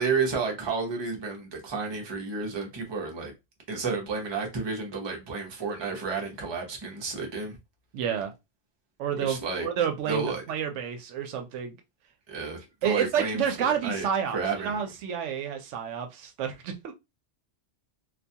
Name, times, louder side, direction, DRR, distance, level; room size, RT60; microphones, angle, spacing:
voice 1, 0.0-3.3 3.7-7.6 9.2-9.7 10.1-10.4 12.3-13.4 13.8-14.1 14.3-14.8, right 4 dB, 30° right, 0.6 m, -31 dB
voice 2, 7.9-8.3 9.0-11.8 12.8-16.9, right 8 dB, 85° right, 0.9 m, -30 dB
2.4 x 2.2 x 2.7 m
omnidirectional pair, 1.2 m